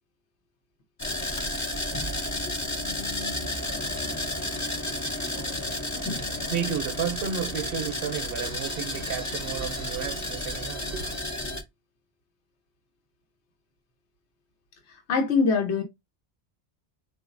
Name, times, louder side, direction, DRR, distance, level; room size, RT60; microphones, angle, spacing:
sound 1, 1.0-11.6, left 1 dB, 25° left, 0.4 m, -32 dB
voice 1, 3.5-11.2, right 8 dB, 60° right, 0.9 m, -34 dB
voice 2, 14.9-15.8, left 4 dB, 85° left, 1.1 m, -24 dB
3.9 x 2.6 x 2.5 m
omnidirectional pair, 1.1 m